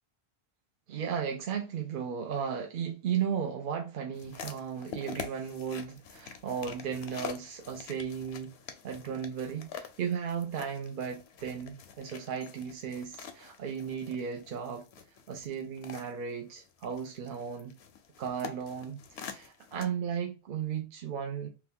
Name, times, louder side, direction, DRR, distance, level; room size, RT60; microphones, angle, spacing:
voice 1, 0.9-8.5 8.8-14.9 15.3-17.8 18.2-21.5, right 7 dB, 60° right, 0.6 m, -35 dB
sound 1, 4.1-19.8, left 7 dB, 75° left, 0.8 m, -46 dB
2.9 x 2.2 x 3.5 m
omnidirectional pair, 1.1 m